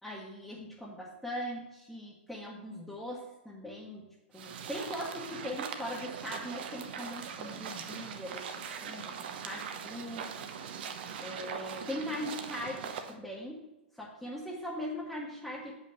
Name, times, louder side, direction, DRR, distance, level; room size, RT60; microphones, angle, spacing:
voice 1, 0.0-4.1 4.3-9.2 9.4-10.3 11.2-13.6 13.9-15.7, equal, ahead, -6 dB, 1.2 m, -40 dB
sound 1, 4.3-13.1, right 7 dB, 60° right, 0.8 m, -41 dB
6.5 x 5.5 x 5.3 m, 1.0 s
hypercardioid pair, 115°, 6 cm